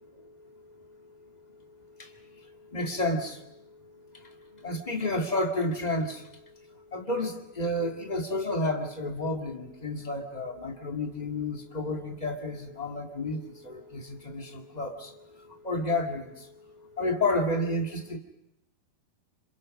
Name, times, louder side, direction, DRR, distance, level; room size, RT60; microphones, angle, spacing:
voice 1, 2.7-3.4 4.6-6.2 6.9-15.1 15.6-16.5 17.0-18.2, left 1 dB, 25° left, 1 dB, 0.8 m, -30 dB
28.5 x 27.0 x 5.4 m, 0.88 s
omnidirectional pair, 4.4 m